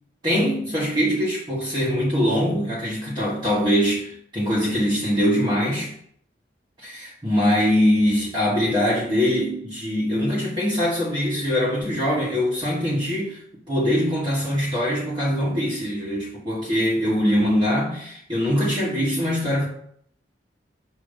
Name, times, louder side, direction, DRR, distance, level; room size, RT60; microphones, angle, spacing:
voice 1, 0.2-5.9 6.8-13.4 13.7-19.7, equal, 25° right, -7 dB, 1.2 m, -22 dB
6.6 x 2.8 x 5.1 m, 0.67 s
head